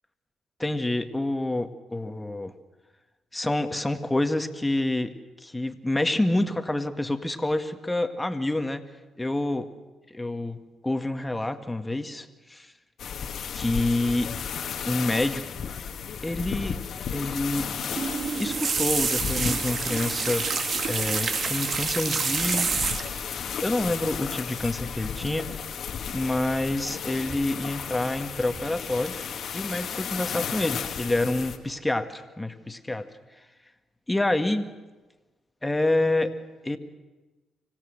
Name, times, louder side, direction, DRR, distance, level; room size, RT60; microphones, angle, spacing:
voice 1, 0.6-2.5 3.3-5.1 5.4-8.8 9.2-9.7 10.1-10.6 10.8-12.7 13.5-14.3 14.8-15.4 16.2-16.8 17.1-17.7 18.4-20.5 20.9-22.7 23.6-25.5 26.1-29.2 29.5-33.1 34.1-34.7 35.6-36.3 36.6-36.8, left 2 dB, 15° left, 7 dB, 1.9 m, -27 dB
sound 1, 13.0-31.6, left 7 dB, 60° left, 1.6 m, -34 dB
sound 2, 17.7-23.3 24.3-24.6 24.9-25.2 26.4-26.9 27.3-27.8 28.3-28.7 29.1-29.2, right 5 dB, 50° right, 2.0 m, -28 dB
25.5 x 17.0 x 6.6 m, 1.2 s
hypercardioid pair, 50°, 0 cm